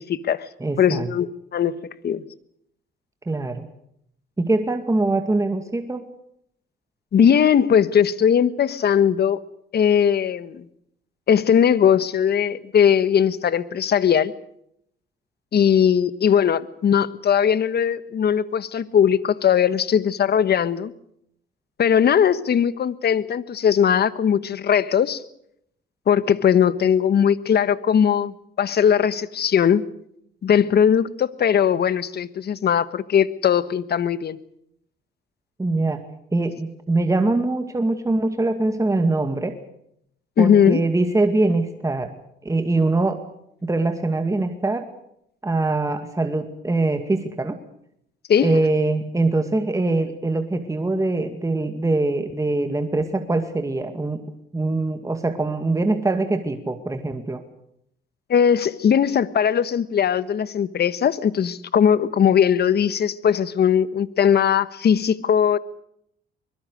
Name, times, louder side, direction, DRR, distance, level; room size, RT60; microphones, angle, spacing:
voice 1, 0.0-0.5 0.8-1.8 2.0-2.2 7.1-9.4 9.7-10.6 11.3-14.3 15.5-20.9 21.8-25.2 26.1-29.8 30.4-34.4 40.4-40.8 48.3-48.5 58.3-65.6, left 8 dB, 55° left, 15 dB, 1.4 m, -19 dB
voice 2, 0.6-1.1 3.3-3.7 4.4-6.0 35.6-36.0 36.3-39.5 40.4-42.1 42.4-43.2 43.6-44.9 45.4-47.6 48.4-54.2 54.5-57.4, right 2 dB, 15° right, 7 dB, 2.2 m, -23 dB
24.5 x 22.0 x 6.5 m, 0.73 s
cardioid pair, 90°, 20 cm